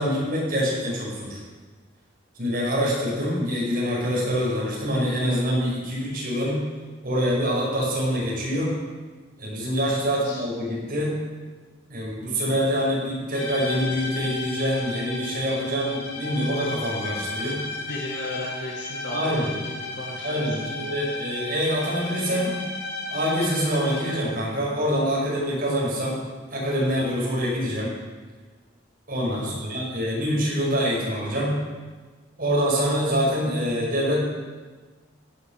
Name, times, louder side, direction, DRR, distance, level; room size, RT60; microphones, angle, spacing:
voice 1, 0.0-1.4 2.4-6.6 7.0-8.7 9.4-11.1 11.9-17.6 19.1-19.5 20.2-22.5 23.1-26.2 26.5-27.9 29.1-31.5 32.4-34.2, equal, 45° right, -4 dB, 5.7 m, -25 dB
voice 2, 10.0-10.4 17.8-20.7 29.3-29.6, left 2 dB, 55° left, -4 dB, 2.0 m, -35 dB
sound 1, 13.3-24.4, left 2 dB, 85° left, 4.4 m, -34 dB
16.0 x 9.7 x 6.7 m, 1.4 s
head